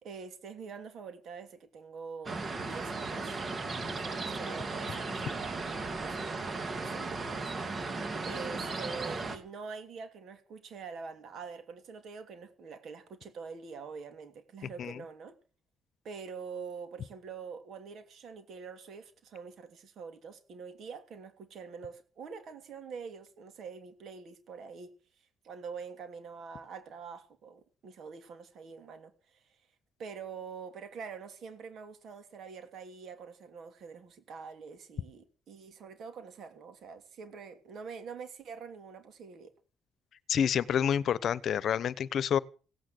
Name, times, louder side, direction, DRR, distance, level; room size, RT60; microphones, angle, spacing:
voice 1, 0.0-3.4 4.0-7.5 7.8-15.4 16.0-24.9 25.4-29.6 30.0-39.5, right 5 dB, 65° right, 2.9 m, -45 dB
sound 1, 2.3-9.4, right 3 dB, 40° right, 2.4 m, -36 dB
voice 2, 40.3-42.4, left 8 dB, 65° left, 0.9 m, -28 dB
16.5 x 9.2 x 7.7 m
cardioid pair, 90°, 0 cm